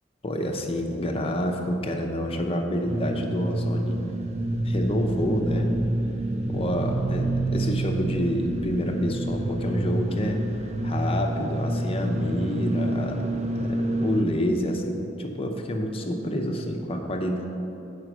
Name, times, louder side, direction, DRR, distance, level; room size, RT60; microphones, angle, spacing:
voice 1, 0.2-4.0 4.6-5.7 6.5-13.3 13.5-17.5, equal, 30° left, 3 dB, 0.7 m, -28 dB
sound 1, 2.9-14.2, right 1 dB, 35° right, 0.5 m, -27 dB
8.0 x 5.1 x 6.0 m, 2.9 s
head